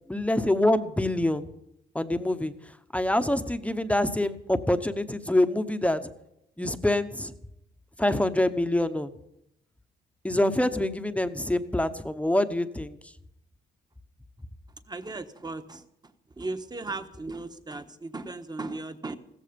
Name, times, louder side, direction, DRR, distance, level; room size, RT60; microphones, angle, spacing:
voice 1, 0.1-1.5 1.9-2.5 2.9-6.0 6.6-7.3 8.0-9.1 10.2-13.0, left 1 dB, 5° left, 9 dB, 1.0 m, -25 dB
voice 2, 14.9-15.8 16.4-19.2, right 3 dB, 20° right, 9 dB, 1.3 m, -36 dB
15.5 x 14.5 x 5.2 m, 0.79 s
cardioid pair, 90°, 20 cm